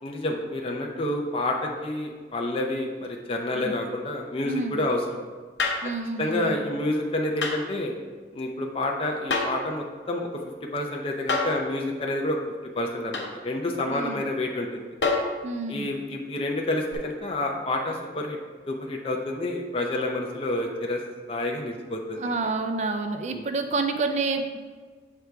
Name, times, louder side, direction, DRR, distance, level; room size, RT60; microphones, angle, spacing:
voice 1, 0.0-5.0 6.2-7.9 8.3-10.3 10.7-12.4 12.7-14.9 15.7-18.4 18.7-21.0 21.3-22.5 23.3-23.4, left 1 dB, 30° left, 1 dB, 0.5 m, -29 dB
voice 2, 4.4-4.8 5.8-6.6 13.9-14.2 15.4-15.9 22.2-24.6, right 3 dB, 40° right, 6 dB, 0.4 m, -29 dB
sound 1, 5.6-5.9 7.4-7.6 9.3-9.7 11.3-11.6 13.1-13.3 15.0-15.4 16.9-17.0, left 3 dB, 80° left, 0.9 m, -26 dB
6.6 x 3.5 x 4.6 m, 1.5 s
head